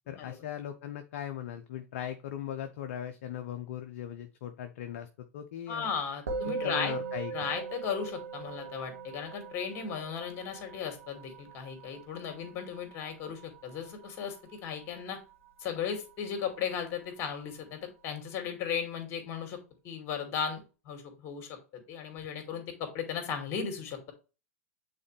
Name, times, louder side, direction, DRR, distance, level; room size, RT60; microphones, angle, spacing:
voice 1, 0.1-5.9 6.4-7.3, left 10 dB, 50° left, 7 dB, 0.7 m, -39 dB
voice 2, 5.7-7.0 7.3-15.2 15.6-19.6 19.8-24.1, left 7 dB, 35° left, 6 dB, 2.4 m, -36 dB
Musical instrument, 6.3-15.8, right 5 dB, 65° right, 1.6 m, -41 dB
8.6 x 4.2 x 3.3 m, 0.32 s
figure-of-eight pair, 90°, 8 cm